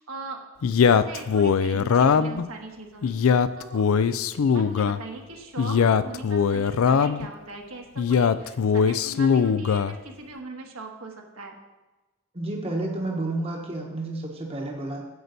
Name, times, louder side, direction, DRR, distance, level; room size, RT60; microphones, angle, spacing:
voice 1, 0.0-3.2 3.6-4.2 4.5-11.6, right 3 dB, 75° right, 1 dB, 1.4 m, -40 dB
Male speech man speaking, 0.6-2.4 3.0-5.0 5.6-7.3 8.0-10.0, left 6 dB, 75° left, 0.4 m, -21 dB
voice 2, 12.3-15.0, right 2 dB, 25° right, 0 dB, 1.0 m, -30 dB
9.4 x 7.9 x 4.0 m, 1.1 s
head